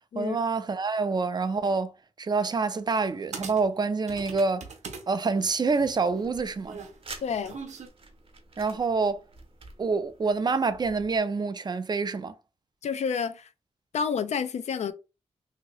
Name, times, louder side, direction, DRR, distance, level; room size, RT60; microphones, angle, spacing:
voice 1, 0.1-1.9 2.2-4.6 5.1-6.8 8.6-9.2 9.8-12.3, right 4 dB, 40° right, 0.4 m, -27 dB
sound 1, 2.9-3.0 3.3-5.0 5.4-7.9, right 5 dB, 90° right, 0.7 m, -41 dB
sound 2, 6.2-11.2, right 3 dB, 55° right, 0.8 m, -49 dB
voice 2, 7.2-7.5 12.8-13.5 13.9-14.9, left 6 dB, 75° left, 0.4 m, -29 dB
2.8 x 2.7 x 2.9 m
wide cardioid pair, 85°, 11 cm